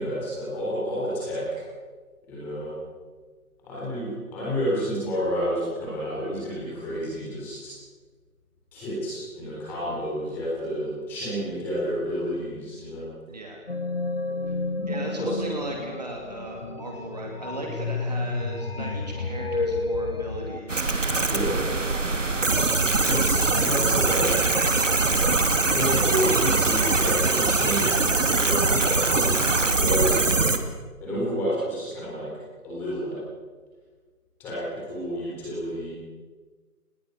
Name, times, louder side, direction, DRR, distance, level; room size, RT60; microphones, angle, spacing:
voice 1, 0.0-1.6 2.3-2.7 3.6-7.7 8.7-13.1 15.2-15.4 21.3-21.6 23.0-24.5 25.7-29.5 29.8-30.6 31.0-32.3 32.6-33.2 34.4-35.9, equal, 5° left, -7 dB, 3.9 m, -30 dB
voice 2, 13.3-13.6 14.9-21.3 21.7-22.8, right 1 dB, 25° right, 0 dB, 2.9 m, -37 dB
sound 1, 13.7-20.6, left 3 dB, 40° left, 1.4 m, -30 dB
sound 2, 20.7-30.6, right 3 dB, 55° right, 2.4 m, -22 dB
28.5 x 19.5 x 6.7 m, 1.4 s
figure-of-eight pair, 170°, 46 cm